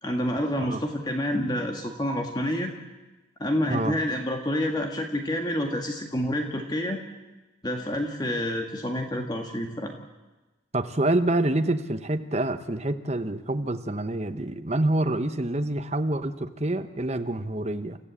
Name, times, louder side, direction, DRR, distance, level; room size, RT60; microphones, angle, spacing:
voice 1, 0.0-2.7 3.4-7.0 7.6-9.9, left 1 dB, 20° left, 3 dB, 1.7 m, -28 dB
voice 2, 10.7-18.0, right 1 dB, 35° right, 8 dB, 1.0 m, -27 dB
29.0 x 15.0 x 8.5 m, 1.2 s
head